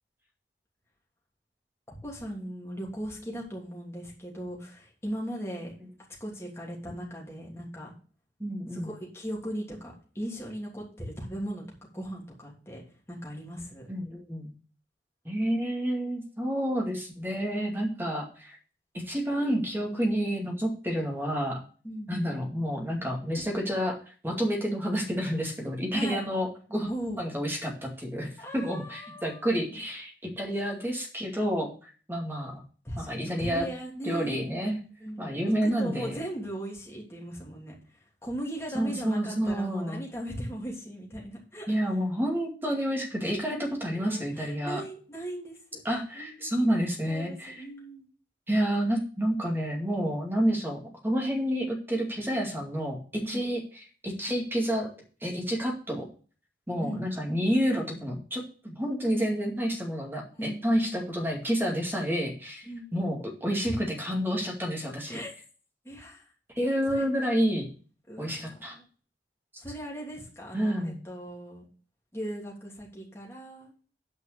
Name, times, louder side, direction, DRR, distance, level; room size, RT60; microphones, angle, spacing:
voice 1, 1.9-5.7 6.2-7.9 8.7-12.8 13.1-13.9 21.8-22.3 25.9-26.2 26.9-27.2 28.4-29.4 32.8-33.1 33.4-34.4 35.0-35.3 35.6-37.7 38.2-41.7 43.9-45.8 46.1-46.7 47.1-48.1 53.2-53.5 56.8-57.0 60.4-61.0 62.7-62.9 63.7-63.8 65.1-65.3 65.8-66.3 66.9-67.1 68.1-68.9 69.6-71.6 72.1-73.7, equal, 15° left, -2 dB, 3.0 m, -38 dB
voice 2, 8.4-8.9 13.9-14.5 15.2-18.6 19.1-21.6 22.1-24.0 24.2-26.9 27.2-32.6 33.0-33.7 34.0-34.8 35.2-36.2 38.7-40.0 41.7-44.8 45.8-47.6 48.5-53.0 53.3-54.9 55.2-56.1 56.7-65.2 66.6-67.7 68.2-68.8 70.5-71.0, equal, 10° right, 0 dB, 2.3 m, -29 dB
9.2 x 5.3 x 6.6 m, 0.39 s
head